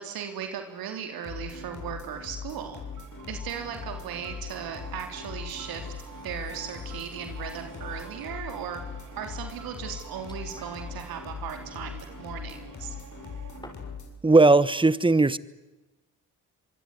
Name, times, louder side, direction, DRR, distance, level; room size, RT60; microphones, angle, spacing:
voice 1, 0.0-2.8 3.3-5.9 6.2-8.8 9.2-13.0, right 8 dB, 80° right, 6 dB, 3.7 m, -37 dB
sound 1, 1.2-14.1, left 5 dB, 55° left, 7.6 m, -40 dB
sound 2, 2.9-13.6, right 7 dB, 60° right, 3.4 m, -49 dB
sound 3, 5.5-14.1, left 1 dB, 10° left, 7.2 m, -57 dB
voice 2, 14.2-15.4, right 3 dB, 15° right, 18 dB, 1.3 m, -18 dB
25.5 x 23.0 x 9.8 m, 1.1 s
supercardioid pair, 65°, 35 cm